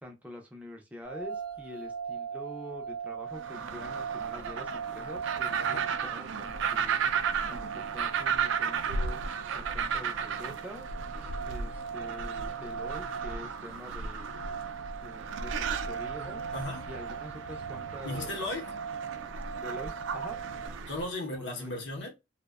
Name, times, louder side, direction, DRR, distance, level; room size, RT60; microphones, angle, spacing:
voice 1, 0.0-7.2 7.5-9.2 9.5-10.9 11.5-14.3 15.0-16.4 16.9-18.3 19.6-20.4 21.3-21.7, equal, 10° right, 0.4 m, -45 dB
sound 1, 1.0-20.7, right 6 dB, 45° right, 0.7 m, -40 dB
sound 2, 3.3-21.1, right 6 dB, 75° right, 0.3 m, -34 dB
voice 2, 16.5-16.9 18.0-18.7 20.9-22.1, left 2 dB, 70° left, 0.8 m, -36 dB
2.5 x 2.1 x 2.3 m
head